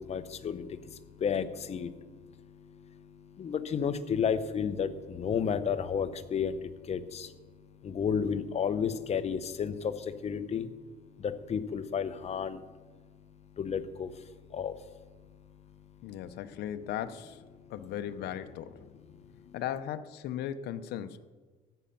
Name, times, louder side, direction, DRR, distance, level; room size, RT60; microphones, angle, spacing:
voice 1, 0.0-10.7 11.0-15.1 16.0-16.1 17.6-17.7 19.1-19.6, left 7 dB, 40° left, 11 dB, 0.9 m, -33 dB
voice 2, 16.0-17.4 17.7-19.2 19.5-21.2, left 10 dB, 75° left, 11 dB, 0.7 m, -37 dB
13.5 x 8.6 x 5.7 m, 1.4 s
cardioid pair, 110°, 17 cm